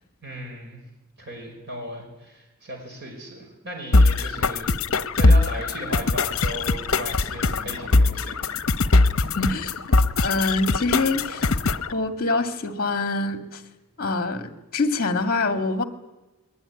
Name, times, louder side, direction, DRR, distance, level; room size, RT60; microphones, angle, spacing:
voice 1, 0.2-0.8 1.2-4.7 5.1-8.4, right 1 dB, 50° right, 5.5 m, -36 dB
sound 1, 3.9-11.9, left 3 dB, 65° left, 0.9 m, -21 dB
sound 2, 6.3-12.0, equal, 70° right, 5.1 m, -46 dB
voice 2, 9.2-9.7 10.2-11.5 11.9-13.6 14.0-15.8, left 3 dB, 40° left, 2.2 m, -25 dB
21.5 x 20.5 x 9.9 m
head